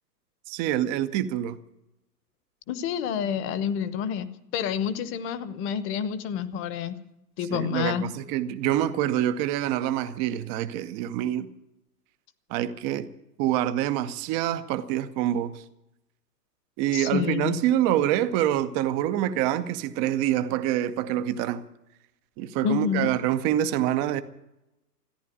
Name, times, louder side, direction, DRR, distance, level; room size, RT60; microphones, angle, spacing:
voice 1, 0.5-1.6 7.5-11.5 12.5-13.1 13.4-15.6 16.8-21.6 22.4-24.2, right 12 dB, 15° right, 0.5 m, -26 dB
voice 2, 2.7-4.3 4.5-7.0 7.4-8.0 16.9-17.6 22.6-23.1, left 8 dB, 25° left, 1.0 m, -28 dB
14.0 x 10.5 x 9.8 m
hypercardioid pair, 125°, 49 cm